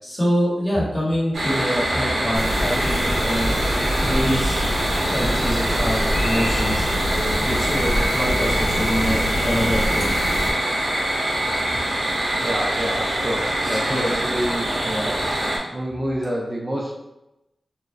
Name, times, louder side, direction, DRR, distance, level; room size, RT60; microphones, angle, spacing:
voice 1, 0.0-3.5 4.0-4.6 5.1-6.8 7.4-10.0 12.4-12.5 13.6-14.4, equal, 20° left, -7 dB, 1.2 m, -25 dB
sound 1, 1.3-15.6, right 1 dB, 75° right, 0.6 m, -24 dB
sound 2, 2.3-10.5, equal, 75° left, 0.7 m, -25 dB
voice 2, 12.4-15.4 15.7-16.9, equal, 30° right, -3 dB, 0.4 m, -28 dB
2.4 x 2.0 x 3.1 m, 0.91 s
wide cardioid pair, 75°, 0 cm